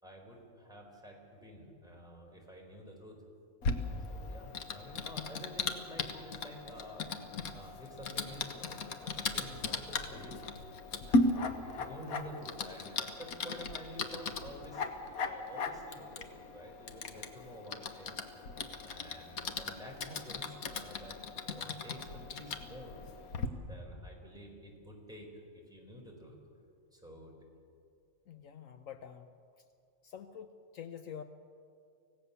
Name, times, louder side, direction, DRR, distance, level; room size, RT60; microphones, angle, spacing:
voice 1, 0.0-3.2 4.1-7.1 7.5-10.5 11.1-14.8 15.2-18.3 18.8-21.2 21.5-23.0 23.7-26.3 26.9-27.3, equal, 5° right, -1 dB, 4.3 m, -50 dB
Typing, 3.6-23.5, left 3 dB, 85° left, 1.6 m, -37 dB
voice 2, 28.3-29.3 30.0-31.2, left 8 dB, 70° left, 9 dB, 1.1 m, -47 dB
25.0 x 17.0 x 7.0 m, 2.4 s
omnidirectional pair, 1.5 m